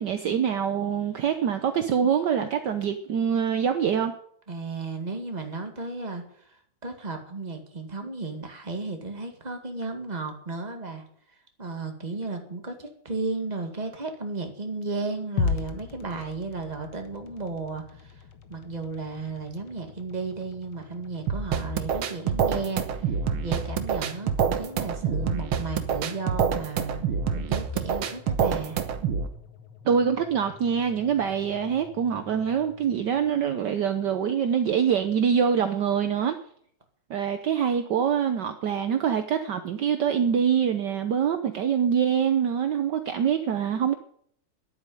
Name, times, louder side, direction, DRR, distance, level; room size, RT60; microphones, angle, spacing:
voice 1, 0.0-4.1 29.8-36.4 37.1-44.0, right 8 dB, 65° right, 8 dB, 1.4 m, -25 dB
voice 2, 4.5-6.6 6.8-11.0 11.6-18.1 18.5-27.0 27.3-28.8, right 3 dB, 20° right, 4 dB, 2.1 m, -34 dB
sound 1, 15.4-33.6, left 5 dB, 80° left, 2.1 m, -40 dB
sound 2, 21.3-29.3, right 7 dB, 85° right, 2.0 m, -27 dB
10.5 x 8.7 x 9.8 m, 0.63 s
omnidirectional pair, 2.2 m